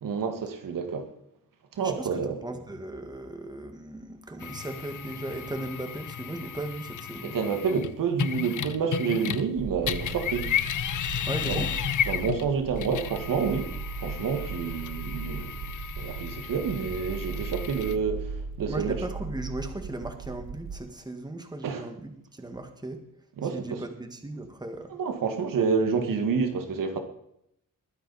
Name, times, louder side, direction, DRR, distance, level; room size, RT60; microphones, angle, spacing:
voice 1, 0.0-1.1 1.7-2.4 7.2-10.5 11.4-11.7 12.1-13.7 14.0-15.5 16.0-19.0 21.6-21.9 23.4-23.8 24.9-27.0, right 6 dB, 75° right, 1.9 m, -28 dB
voice 2, 1.8-7.4 11.3-11.7 18.7-23.0 23.5-24.9, right 2 dB, 10° right, 1.8 m, -37 dB
sound 1, 4.4-9.6 9.8-18.0, left 9 dB, 65° left, 0.8 m, -33 dB
sound 2, 9.6-20.8, right 5 dB, 55° right, 0.9 m, -38 dB
21.5 x 9.7 x 4.2 m
cardioid pair, 115°, 33 cm